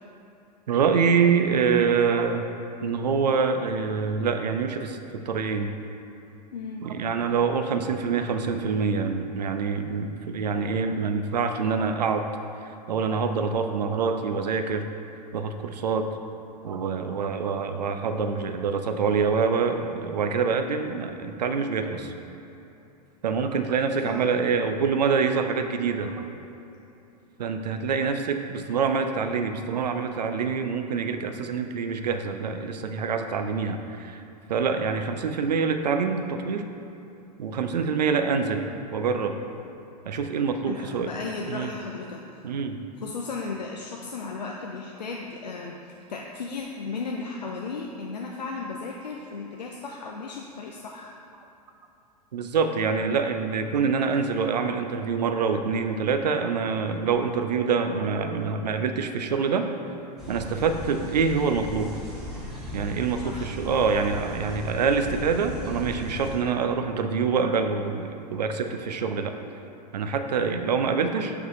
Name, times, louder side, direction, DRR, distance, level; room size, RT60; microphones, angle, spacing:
voice 1, 0.7-2.5 2.8-5.7 6.8-12.2 12.6-14.9 15.3-16.1 16.6-22.1 23.2-26.2 27.4-34.2 34.5-36.6 37.4-38.7 38.9-39.3 40.1-41.1 41.5-41.7 42.4-42.8 52.3-59.7 60.3-61.9 62.7-69.3 69.9-71.3, right 5 dB, 75° right, 7 dB, 0.5 m, -25 dB
voice 2, 6.5-6.9 24.0-24.2 40.7-42.4 43.0-51.1 63.2-63.5, left 4 dB, 85° left, 0 dB, 0.5 m, -35 dB
sound 1, 60.2-66.4, left 1 dB, ahead, 1.4 m, -37 dB
6.4 x 4.8 x 3.2 m, 2.9 s
figure-of-eight pair, 95°, 21 cm